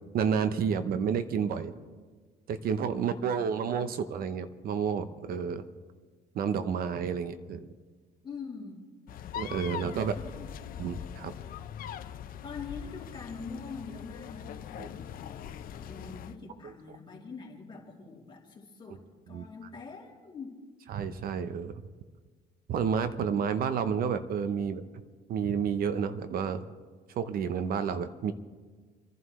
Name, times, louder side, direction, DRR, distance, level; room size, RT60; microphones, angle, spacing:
voice 1, 0.1-1.7 2.5-5.7 6.3-7.7 9.3-10.1 10.8-11.3 14.8-14.9 16.6-16.7 19.3-19.5 20.9-21.8 22.7-24.8 25.3-26.6 27.1-28.3, right 7 dB, 60° right, 11 dB, 0.8 m, -30 dB
voice 2, 2.9-3.8 8.2-8.8 9.9-10.5 12.4-20.6, left 4 dB, 30° left, -2 dB, 2.8 m, -44 dB
sound 1, 9.1-16.4, left 9 dB, 60° left, 0.7 m, -42 dB
28.0 x 11.0 x 3.2 m, 1.5 s
cardioid pair, 110°, 17 cm